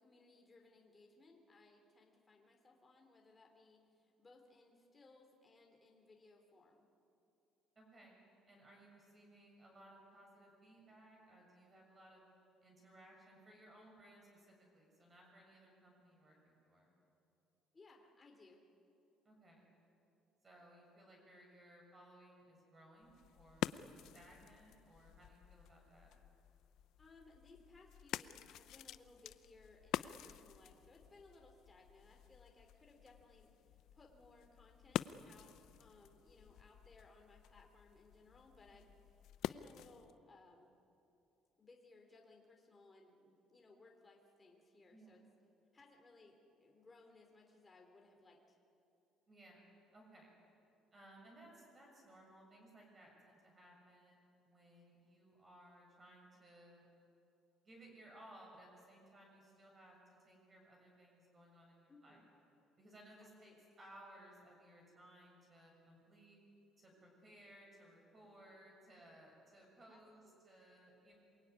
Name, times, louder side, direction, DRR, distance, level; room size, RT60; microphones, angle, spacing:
voice 1, 0.0-6.9 17.7-18.6 27.0-39.2 39.5-40.7 41.6-45.2 45.7-48.6 61.9-62.3 63.2-63.7 69.9-70.5, left 3 dB, 20° left, 1 dB, 3.3 m, -64 dB
voice 2, 7.8-12.2 12.6-16.9 19.3-19.7 20.4-26.1 44.9-45.2 49.3-49.7 49.9-50.3 50.9-56.9 57.6-62.2 62.8-66.4 66.8-71.2, right 1 dB, 25° right, -1 dB, 6.9 m, -61 dB
sound 1, 23.0-40.2, left 12 dB, 65° left, 0.6 m, -48 dB
27.5 x 22.0 x 9.7 m, 2.7 s
cardioid pair, 150°, 0 cm